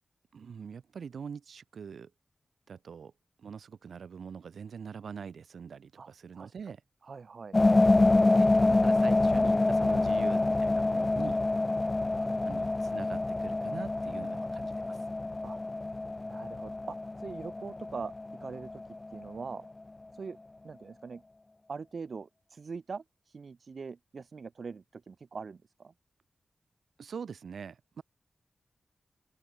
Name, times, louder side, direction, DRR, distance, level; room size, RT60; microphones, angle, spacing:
voice 1, 0.3-2.1 2.7-3.1 3.4-6.8 8.3-11.4 12.4-15.0 27.0-28.0, right 6 dB, 85° right, 5.7 m, -43 dB
voice 2, 6.0-6.5 7.0-7.6 12.1-12.4 15.4-15.6 16.2-18.1 18.4-18.8 19.1-19.7 20.1-20.4 20.6-21.2 21.7-25.9, right 5 dB, 65° right, 7.4 m, -42 dB
sound 1, 7.5-19.3, left 2 dB, 30° left, 0.9 m, -27 dB
open air
cardioid pair, 65°, 0 cm